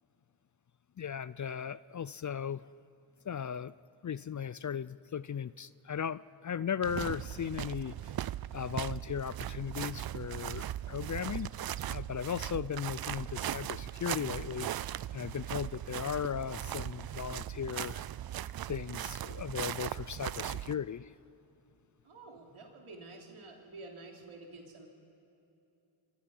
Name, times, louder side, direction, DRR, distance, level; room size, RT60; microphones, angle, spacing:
voice 1, 1.0-2.7 3.2-3.7 4.0-8.1 8.5-11.5 11.9-14.7 15.1-18.1 18.7-21.1, left 8 dB, 40° left, 18 dB, 0.5 m, -37 dB
sound 1, 6.8-20.8, right 12 dB, 50° right, 0.5 m, -39 dB
voice 2, 22.0-24.9, right 3 dB, 75° right, 1 dB, 3.4 m, -49 dB
27.0 x 24.0 x 5.6 m, 2.8 s
cardioid pair, 50°, 49 cm